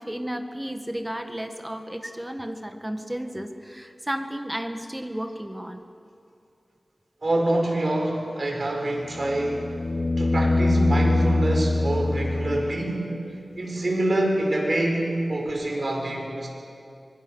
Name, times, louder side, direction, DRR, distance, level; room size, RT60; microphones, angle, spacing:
voice 1, 0.0-5.8, equal, 10° right, 6 dB, 1.7 m, -33 dB
voice 2, 7.2-9.8 10.2-13.1 13.6-16.5, right 1 dB, 50° right, 1 dB, 5.2 m, -26 dB
sound 1, 9.0-13.1 15.5-15.6, left 2 dB, 70° left, 3.4 m, -24 dB
25.5 x 22.5 x 6.3 m, 2.5 s
wide cardioid pair, 65°, 0 cm